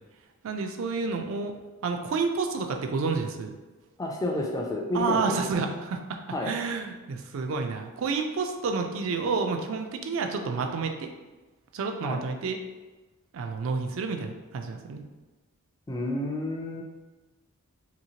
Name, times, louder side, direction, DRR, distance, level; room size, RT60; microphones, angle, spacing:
voice 1, 0.4-1.6 1.8-3.5 4.9-6.2 6.5-11.1 11.7-12.6 13.3-15.0, right 4 dB, 60° right, 5 dB, 0.3 m, -29 dB
voice 2, 4.0-5.4 6.3-6.5 12.0-12.2 15.9-16.8, left 1 dB, 15° left, 0 dB, 0.3 m, -30 dB
2.9 x 2.7 x 2.8 m, 1.2 s
head